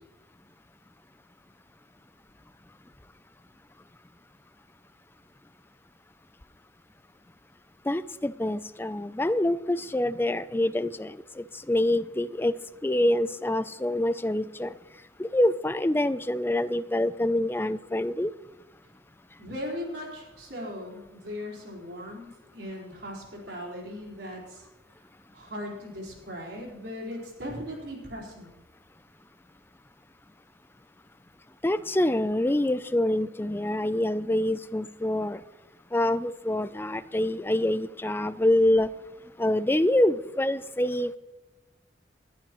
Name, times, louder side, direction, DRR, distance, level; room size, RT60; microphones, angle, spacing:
voice 1, 7.9-12.5 12.8-14.7 15.2-18.3 31.6-35.4 35.9-38.9 39.4-41.2, left 1 dB, 10° left, 14 dB, 0.4 m, -26 dB
voice 2, 19.4-24.7 25.3-28.5, left 1 dB, 70° right, -2 dB, 4.5 m, -38 dB
20.0 x 11.5 x 3.1 m, 1.1 s
head